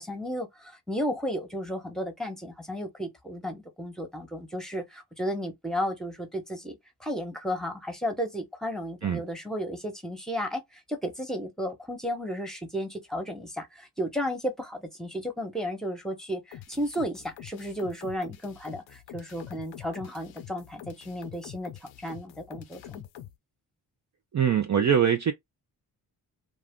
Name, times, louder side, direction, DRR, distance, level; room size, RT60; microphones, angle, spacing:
voice 1, 0.0-23.0, equal, ahead, 1.2 m, -33 dB
sound 1, 16.5-23.3, left 12 dB, 85° left, 0.5 m, -46 dB
voice 2, 24.3-25.3, right 8 dB, 40° right, 0.5 m, -23 dB
2.4 x 2.3 x 3.6 m
supercardioid pair, 50°, 44 cm